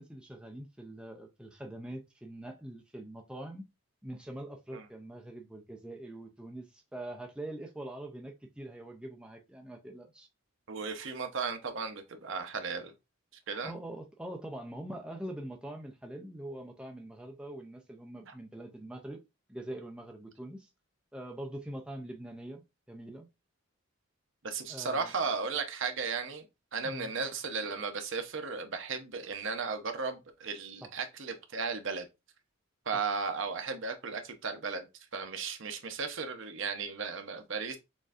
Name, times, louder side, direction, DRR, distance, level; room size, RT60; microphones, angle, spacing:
voice 1, 0.0-3.6 4.0-10.3 13.6-19.2 19.5-20.7 21.1-22.6 22.9-23.3 24.7-25.1 26.8-27.1 30.8-30.9 32.9-33.0, right 1 dB, 5° right, 0.4 m, -43 dB
voice 2, 10.7-12.9 13.5-13.7 18.3-18.4 24.4-26.4 26.7-32.0 32.9-34.9 35.1-37.8, right 5 dB, 60° right, 0.7 m, -35 dB
6.2 x 2.6 x 2.4 m
head